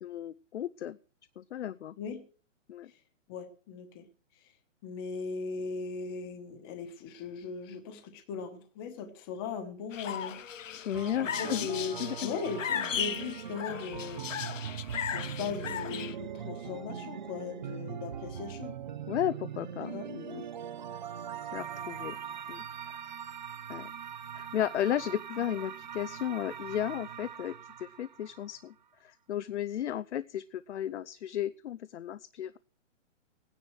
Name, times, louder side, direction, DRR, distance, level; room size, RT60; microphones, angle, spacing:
voice 1, 0.0-1.0 1.4-1.9 2.7-2.9 10.7-11.7 12.0-12.3 16.4-17.1 19.1-20.4 21.5-22.2 22.5-22.6 22.9-23.0 23.7-23.9 24.3-28.7 29.0-32.6, left 11 dB, 65° left, 0.6 m, -34 dB
voice 2, 3.3-4.0 4.8-10.4 11.2-14.3 15.1-18.8 19.9-20.1 25.4-25.6, left 5 dB, 20° left, 1.2 m, -38 dB
sound 1, 9.9-16.1, left 9 dB, 90° left, 0.9 m, -36 dB
sound 2, 10.9-28.6, right 8 dB, 40° right, 0.6 m, -41 dB
17.0 x 10.0 x 4.7 m
hypercardioid pair, 170°, 37 cm